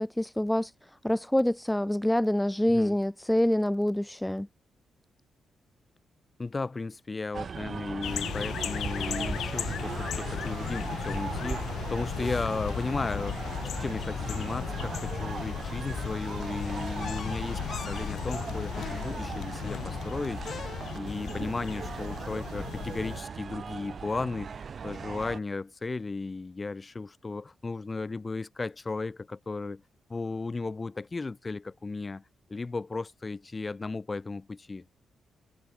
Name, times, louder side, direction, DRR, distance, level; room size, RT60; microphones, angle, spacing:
voice 1, 0.0-4.5, left 1 dB, 5° left, 0.5 m, -26 dB
voice 2, 6.4-13.5 13.8-20.4 20.9-29.8 30.1-32.2 32.5-34.8, left 3 dB, 25° left, 2.4 m, -35 dB
sound 1, 7.3-25.4, right 6 dB, 45° right, 3.3 m, -38 dB
sound 2, 8.0-23.2, left 10 dB, 75° left, 1.3 m, -36 dB
sound 3, 17.0-21.3, left 7 dB, 50° left, 1.5 m, -44 dB
wide cardioid pair, 140°, 0 cm